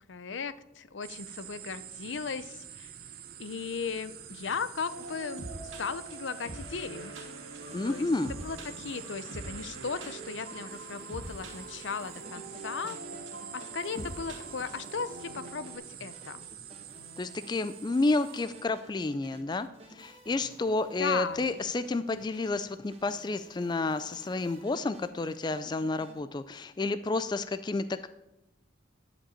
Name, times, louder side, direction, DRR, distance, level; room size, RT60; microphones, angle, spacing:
voice 1, 0.1-2.9 3.4-7.1 7.8-13.0 13.5-16.5 21.0-21.5, left 5 dB, 70° left, 14 dB, 0.6 m, -37 dB
sound 1, 1.0-18.7, right 10 dB, 50° right, 0.8 m, -47 dB
sound 2, 4.9-15.7, right 2 dB, 80° right, 2.8 m, -44 dB
sound 3, 7.6-26.2, equal, 30° right, 1.7 m, -53 dB
voice 2, 7.7-8.3 14.0-14.1 17.2-28.1, left 3 dB, 20° left, 12 dB, 0.3 m, -30 dB
11.5 x 5.2 x 8.5 m, 0.92 s
head